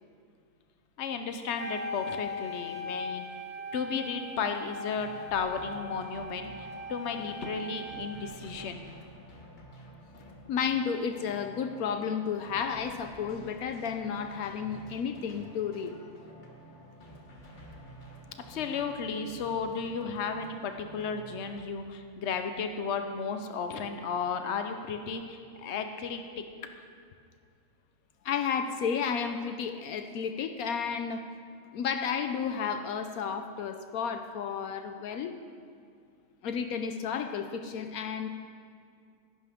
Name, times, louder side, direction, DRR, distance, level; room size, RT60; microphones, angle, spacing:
voice 1, 1.0-3.2 3.7-8.8 18.5-26.4, left 5 dB, 55° left, 6 dB, 1.0 m, -34 dB
Wind instrument woodwind instrument, 1.6-8.5, left 2 dB, 75° right, 1.6 m, -40 dB
sound 1, 5.0-21.6, right 1 dB, 35° left, 1.4 m, -50 dB
voice 2, 10.5-16.0 28.2-31.3 31.7-35.3 36.4-38.3, left 7 dB, 75° left, 7 dB, 1.1 m, -32 dB
17.5 x 10.5 x 3.6 m, 2.2 s
omnidirectional pair, 1.6 m